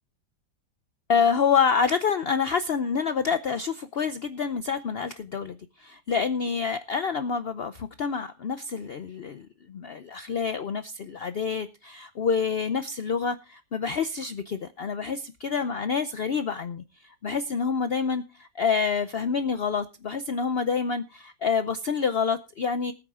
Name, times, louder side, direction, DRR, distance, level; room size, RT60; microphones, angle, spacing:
voice 1, 1.1-22.9, left 6 dB, 60° left, 11 dB, 0.6 m, -27 dB
19.5 x 8.8 x 3.6 m, 0.30 s
omnidirectional pair, 1.9 m